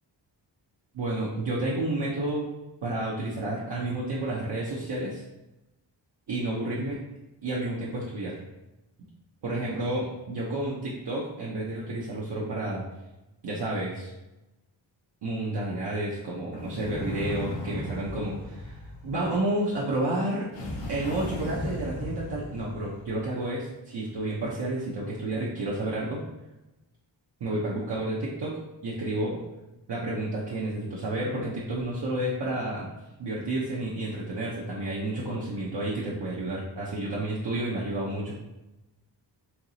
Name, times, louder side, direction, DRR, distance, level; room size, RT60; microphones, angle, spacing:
voice 1, 0.9-2.5 2.8-5.2 6.3-7.0 7.4-8.4 9.4-12.8 13.4-14.1 15.2-20.5 20.9-26.2 27.4-28.5 28.8-29.4 29.9-32.9 33.2-38.4, right 1 dB, 65° right, -6 dB, 0.8 m, -30 dB
sound 1, 16.5-19.6 20.5-23.2, left 1 dB, 85° left, 0.9 m, -36 dB
4.6 x 2.8 x 2.7 m, 0.99 s
wide cardioid pair, 95°, 45 cm